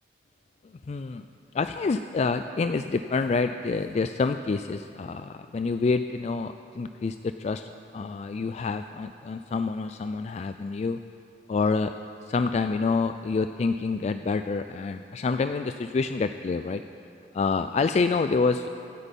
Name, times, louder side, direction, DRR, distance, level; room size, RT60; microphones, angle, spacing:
voice 1, 0.9-1.2 1.5-11.0 11.5-11.9 12.3-16.8 17.3-18.7, left 4 dB, 40° left, 9 dB, 0.3 m, -27 dB
24.5 x 8.3 x 5.3 m, 2.7 s
head